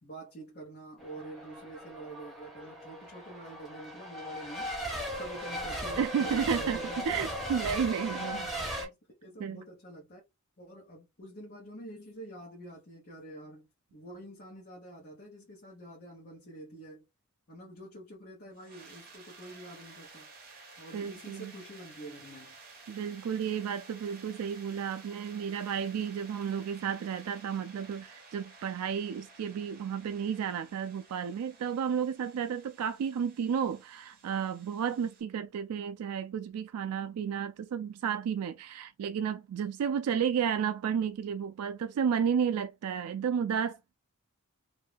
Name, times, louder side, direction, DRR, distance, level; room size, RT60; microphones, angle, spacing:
voice 1, 0.0-4.7 5.1-7.0 8.0-10.2 10.6-13.7 13.9-17.0 17.5-20.3 20.8-22.6, right 1 dB, 45° left, 1.0 m, -47 dB
Race car auto racing / Accelerating revving vroom / Mechanisms, 1.0-8.9, equal, ahead, 1.1 m, -37 dB
voice 2, 6.0-6.8 7.1-8.9 9.4-9.6 20.9-21.5 22.9-43.8, right 7 dB, 80° right, 0.3 m, -32 dB
sound 1, 18.5-35.2, right 3 dB, 45° right, 0.9 m, -54 dB
2.7 x 2.2 x 3.3 m
head